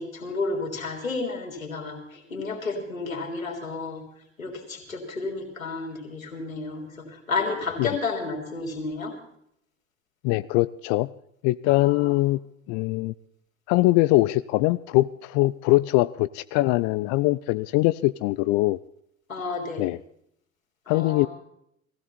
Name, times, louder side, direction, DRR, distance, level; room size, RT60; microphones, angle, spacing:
voice 1, 0.0-4.0 4.4-9.1 11.7-12.1 19.3-19.8 20.9-21.3, left 3 dB, 85° left, 0 dB, 3.5 m, -31 dB
voice 2, 10.2-11.1 11.4-12.4 12.7-13.1 13.7-18.8 19.8-20.0 20.9-21.3, left 19 dB, 45° left, 15 dB, 0.5 m, -22 dB
20.0 x 16.0 x 4.2 m, 0.73 s
figure-of-eight pair, 65°, 40 cm